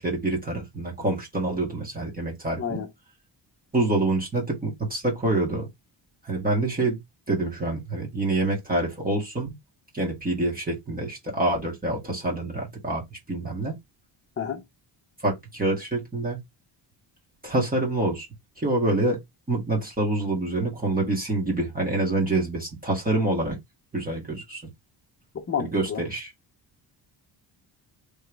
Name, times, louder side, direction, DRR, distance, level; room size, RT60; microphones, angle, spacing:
voice 1, 0.0-2.8 3.7-5.7 6.2-7.0 7.3-9.5 9.9-13.8 15.2-16.4 17.4-18.3 18.6-19.2 19.5-23.6 23.9-24.6 25.6-26.3, right 2 dB, 20° right, 1.9 m, -26 dB
voice 2, 2.6-2.9 14.4-14.6 25.3-26.0, left 7 dB, 30° left, 0.9 m, -30 dB
4.4 x 3.4 x 3.2 m
wide cardioid pair, 150°, 45 cm